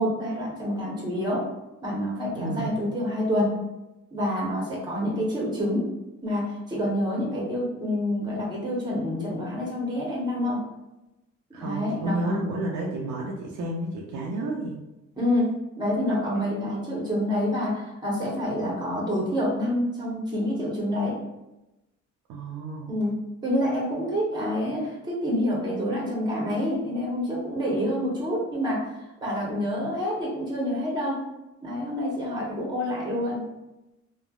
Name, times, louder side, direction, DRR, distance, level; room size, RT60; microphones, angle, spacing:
voice 1, 0.0-1.5 1.8-3.6 4.1-5.9 6.2-10.6 11.6-12.4 15.2-21.2 22.9-28.8 29.2-31.2 31.6-33.4, left 1 dB, 15° right, -3 dB, 0.9 m, -27 dB
voice 2, 2.3-2.7 11.5-14.8 22.3-22.9, right 2 dB, 80° right, -2 dB, 0.5 m, -31 dB
3.2 x 2.1 x 2.3 m, 0.98 s
cardioid pair, 90°, 30 cm